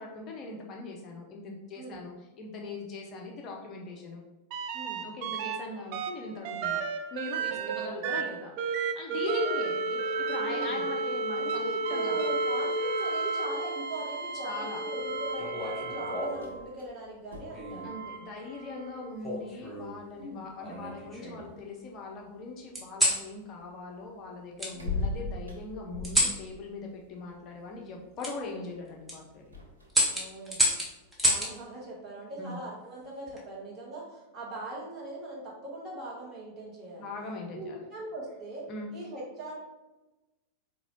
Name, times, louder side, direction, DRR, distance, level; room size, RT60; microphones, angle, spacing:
voice 1, 0.0-4.2 5.0-6.8 7.1-11.6 11.9-12.1 14.4-14.8 17.8-29.6 32.4-32.6 37.0-37.8 38.7-38.9, left 3 dB, 35° left, 0 dB, 0.6 m, -40 dB
voice 2, 1.8-2.1 4.7-5.1 7.5-8.2 10.4-10.9 11.3-17.9 20.2-20.5 24.7-25.0 30.1-30.8 31.2-37.1 37.5-39.5, right 2 dB, 25° right, -5 dB, 1.4 m, -41 dB
sound 1, 4.5-5.6 5.9-16.7 17.5-19.1 20.8-20.9, right 3 dB, 45° right, 0.3 m, -32 dB
sound 2, 14.9-31.6, left 3 dB, 80° right, 0.7 m, -44 dB
sound 3, 15.4-16.5 17.5-17.9 19.2-20.0 20.6-21.5 22.7-23.2 24.6-24.7 26.0-26.4 28.2-28.3 28.9-29.2 29.9-31.5 33.0-33.4, equal, 5° right, 1.0 m, -29 dB
4.0 x 2.8 x 2.9 m, 1.0 s
figure-of-eight pair, 90°, 0 cm